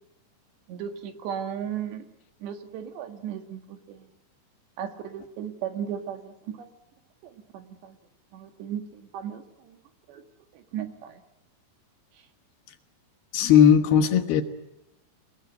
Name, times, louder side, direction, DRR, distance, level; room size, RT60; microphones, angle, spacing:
voice 1, 0.7-2.1 2.4-4.1 4.8-6.7 7.2-8.0 8.3-9.8 10.1-10.2 10.5-11.2, right 9 dB, 75° right, 4.0 m, -36 dB
voice 2, 13.3-14.4, left 8 dB, 70° left, 3.1 m, -17 dB
28.0 x 19.0 x 9.2 m
omnidirectional pair, 5.1 m